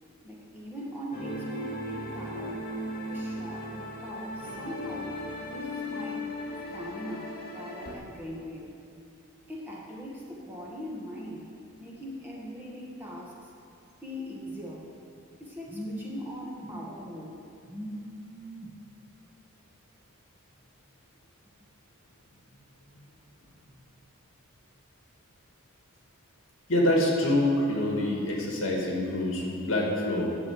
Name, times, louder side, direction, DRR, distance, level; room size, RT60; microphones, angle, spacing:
voice 1, 0.2-2.7 3.1-5.1 5.5-6.3 6.7-8.7 9.5-11.5 11.8-13.5 14.0-14.9 15.4-17.4 17.7-18.7, equal, 10° right, -5 dB, 1.8 m, -40 dB
sound 1, 1.1-7.9, left 1 dB, 45° left, 2.2 m, -37 dB
voice 2, 26.7-30.4, left 1 dB, 60° left, -2 dB, 2.3 m, -26 dB
11.0 x 6.9 x 8.1 m, 2.5 s
head